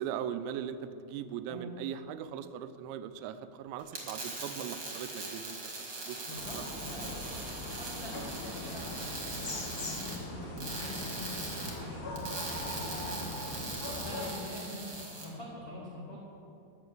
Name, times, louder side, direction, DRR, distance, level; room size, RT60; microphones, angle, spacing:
voice 1, 0.0-5.6 6.1-6.6 6.9-7.4, right 9 dB, 85° right, 11 dB, 2.8 m, -40 dB
sound 1, 3.8-15.3, right 3 dB, 45° right, 1.4 m, -41 dB
voice 2, 6.3-7.1 7.6-16.2, left 1 dB, 70° left, -6 dB, 0.8 m, -45 dB
sound 2, 6.3-14.3, left 2 dB, 40° left, 2.0 m, -40 dB
11.0 x 6.9 x 8.5 m, 2.6 s
omnidirectional pair, 5.2 m